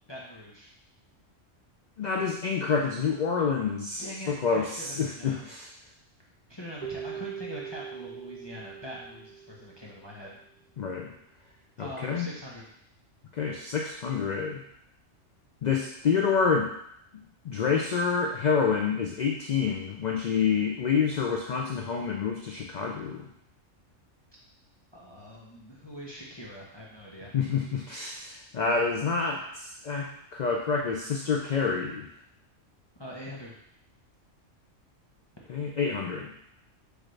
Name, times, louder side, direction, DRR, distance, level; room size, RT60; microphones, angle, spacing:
voice 1, 0.1-0.7 4.0-5.5 6.5-10.4 11.8-12.7 24.9-27.3 32.9-33.6, equal, 25° left, -5 dB, 0.6 m, -43 dB
voice 2, 2.0-5.7 10.8-11.1 11.8-12.3 13.3-14.6 15.6-16.7 17.4-23.3 27.3-32.0 35.5-36.3, left 5 dB, 85° left, 1 dB, 0.3 m, -28 dB
Keyboard (musical), 6.8-10.1, right 7 dB, 80° right, 0.3 m, -41 dB
6.5 x 2.5 x 3.2 m, 0.72 s
omnidirectional pair, 1.3 m